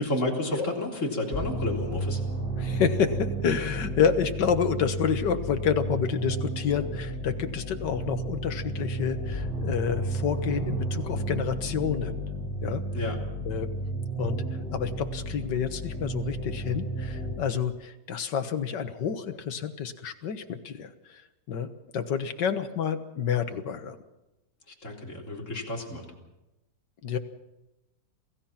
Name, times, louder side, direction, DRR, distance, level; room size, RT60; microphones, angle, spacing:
voice 1, 0.0-2.2 12.9-13.2 24.8-26.1, left 1 dB, 40° left, -1 dB, 4.1 m, -31 dB
sound 1, 1.3-17.3, right 1 dB, 25° left, 8.3 m, -32 dB
voice 2, 2.6-12.2 12.6-12.8 13.5-13.7 14.2-14.4 14.7-21.2 21.5-24.0 27.0-27.2, left 7 dB, 70° left, 8 dB, 2.0 m, -29 dB
27.5 x 16.5 x 5.9 m, 0.95 s
omnidirectional pair, 2.0 m